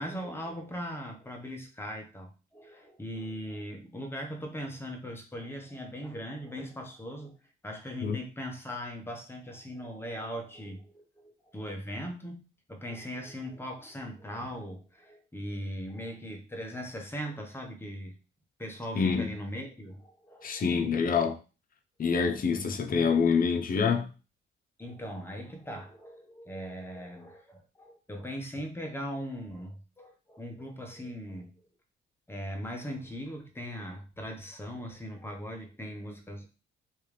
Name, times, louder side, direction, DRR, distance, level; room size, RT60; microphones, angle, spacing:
voice 1, 0.0-7.4 7.6-18.1 18.6-20.7 22.5-22.9 24.8-31.6 32.3-36.4, equal, 10° left, 1.0 m, -39 dB
voice 2, 19.0-19.3 20.4-21.4 22.0-24.1, left 5 dB, 45° left, 0.8 m, -26 dB
3.3 x 3.2 x 3.3 m
cardioid pair, 90°, 20 cm